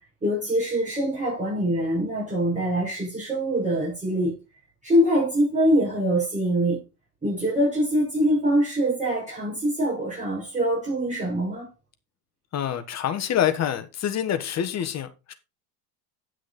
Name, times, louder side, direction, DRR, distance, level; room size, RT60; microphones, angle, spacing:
voice 1, 0.2-4.3 4.8-6.8 7.2-11.7, equal, 15° right, 6.2 m, -24 dB
voice 2, 12.5-15.3, left 10 dB, 35° left, 1.3 m, -26 dB
10.0 x 6.3 x 4.2 m
supercardioid pair, 120°, 47 cm